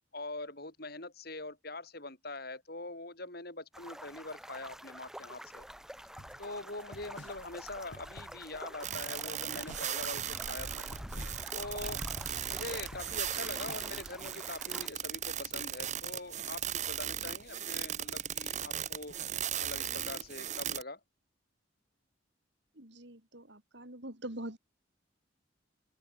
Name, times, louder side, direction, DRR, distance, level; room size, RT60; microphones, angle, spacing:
voice 1, 0.1-5.7 6.4-10.9 11.5-12.0 12.5-19.1 19.6-21.0, left 2 dB, 50° left, 5.4 m, -43 dB
sound 1, 3.7-14.9, equal, 5° right, 1.6 m, -46 dB
sound 2, 6.2-14.1, left 1 dB, 70° left, 4.2 m, -52 dB
sound 3, 8.8-20.8, right 10 dB, 40° right, 1.1 m, -37 dB
voice 2, 22.8-24.6, right 1 dB, 65° right, 5.1 m, -44 dB
head